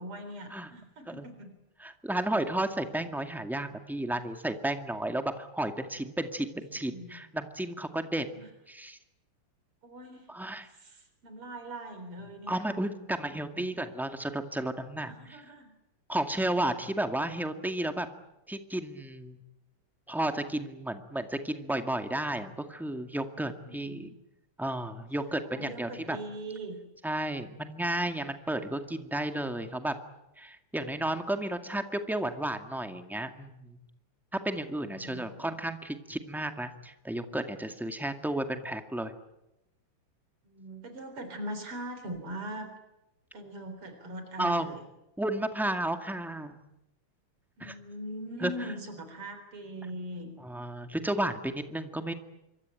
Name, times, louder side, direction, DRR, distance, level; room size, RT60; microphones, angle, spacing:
voice 1, 0.0-1.5 6.7-7.3 8.3-8.5 9.8-10.3 10.6-12.6 13.0-13.2 13.5-13.7 15.0-15.7 23.6-24.1 25.4-26.8 34.9-35.5 40.4-42.7 43.3-44.8 47.6-50.3, right 1 dB, 85° right, 7 dB, 4.7 m, -41 dB
voice 2, 1.8-8.3 8.7-9.0 10.3-10.7 12.5-15.4 16.1-18.1 18.5-19.4 20.1-24.1 24.6-26.2 27.0-30.0 30.4-33.8 34.3-39.1 44.4-44.7 45.2-46.5 47.6-47.7 48.4-48.7 50.4-52.1, right 1 dB, ahead, 7 dB, 1.8 m, -33 dB
26.5 x 24.0 x 9.1 m, 0.92 s
omnidirectional pair, 2.4 m